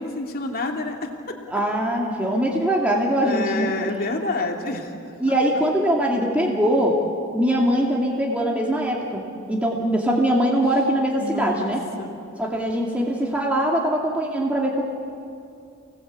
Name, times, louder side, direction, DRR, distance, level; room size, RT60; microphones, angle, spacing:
voice 1, 0.0-1.4 3.2-5.3 11.2-11.7 12.0-12.1, left 2 dB, 45° left, 2 dB, 2.7 m, -28 dB
voice 2, 1.5-3.7 5.2-7.0 7.3-9.2 9.5-11.8 12.4-14.8, right 1 dB, 5° right, -2 dB, 2.5 m, -22 dB
29.0 x 19.5 x 8.5 m, 2.5 s
head